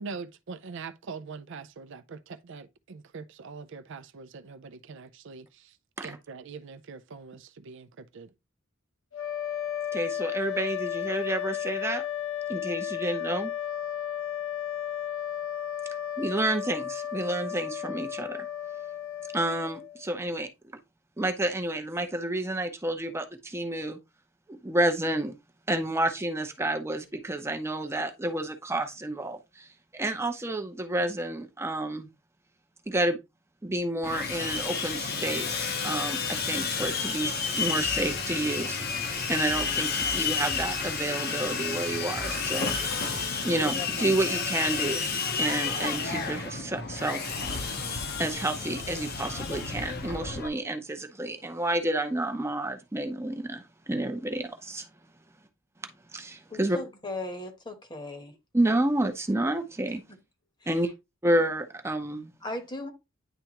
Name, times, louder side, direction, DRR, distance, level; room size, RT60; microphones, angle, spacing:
voice 1, 0.0-5.8 6.0-8.3, right 4 dB, 65° right, 0.5 m, -43 dB
sound 1, 9.1-20.1, left 10 dB, 85° left, 0.9 m, -34 dB
voice 2, 9.9-12.0 12.5-13.5 16.2-18.5 19.3-20.5 21.2-24.0 24.6-25.3 25.7-32.1 32.9-33.2 33.6-38.8 39.3-42.7 43.4-45.1 45.4-47.2 48.2-54.9 56.1-56.8 58.5-60.0 60.7-60.9 61.2-62.3, right 1 dB, 15° right, 0.7 m, -30 dB
Sawing, 34.0-50.5, left 5 dB, 50° left, 1.0 m, -31 dB
sound 2, 37.8-43.3, right 1 dB, 35° right, 1.1 m, -44 dB
voice 3, 56.5-58.3 62.4-62.9, left 2 dB, 20° left, 1.1 m, -37 dB
9.9 x 3.4 x 2.9 m
head